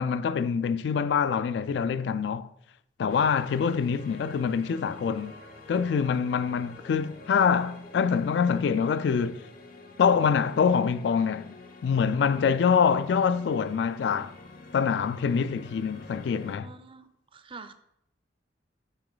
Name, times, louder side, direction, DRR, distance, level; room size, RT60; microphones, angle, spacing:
voice 1, 0.0-2.5 3.0-5.3 5.7-9.4 10.0-11.5 11.8-14.3 14.7-16.7, left 6 dB, 75° left, 0.3 m, -25 dB
sound 1, 3.1-16.6, left 2 dB, 55° left, 0.7 m, -48 dB
voice 2, 16.6-17.7, right 4 dB, 30° right, 0.5 m, -46 dB
6.0 x 3.9 x 4.8 m
head